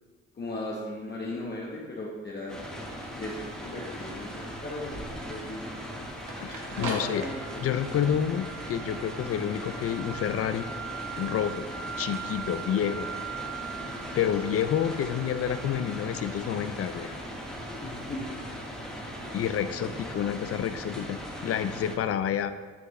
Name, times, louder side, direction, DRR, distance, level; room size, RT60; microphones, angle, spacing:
voice 1, 0.3-2.6 3.2-5.7 6.8-7.6 17.8-18.4 19.8-19.9, left 1 dB, 35° left, -4 dB, 1.0 m, -37 dB
sound 1, 2.5-22.0, equal, ahead, 1.3 m, -39 dB
sound 2, 3.9-18.0, right 6 dB, 85° right, 1.1 m, -41 dB
voice 2, 6.4-7.2 7.6-10.6 11.2-11.6 12.0-13.1 14.1-17.1 19.3-22.5, left 9 dB, 50° left, 11 dB, 0.4 m, -29 dB
9.7 x 3.4 x 3.2 m, 1.4 s
cardioid pair, 90°, 30 cm